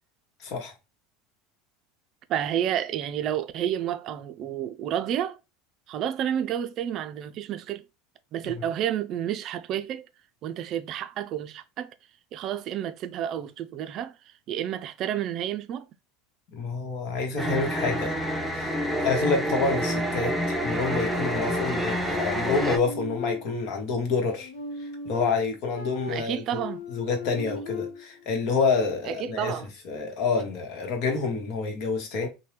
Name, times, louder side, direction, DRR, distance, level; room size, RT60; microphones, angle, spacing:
voice 1, 0.4-0.7 16.5-18.1 18.5-24.5 24.8-26.4 26.9-29.5 29.8-32.3, left 4 dB, 60° left, 1.0 m, -28 dB
voice 2, 2.3-5.4 5.9-7.8 8.3-10.0 10.4-11.9 12.3-15.9 26.1-26.8 29.1-29.7, right 10 dB, 50° right, 0.4 m, -30 dB
sound 1, 17.4-22.8, equal, 5° right, 0.7 m, -28 dB
sound 2, 21.3-23.9 24.3-28.2, left 5 dB, 80° left, 0.8 m, -37 dB
2.8 x 2.2 x 3.2 m
hypercardioid pair, 90°, 0 cm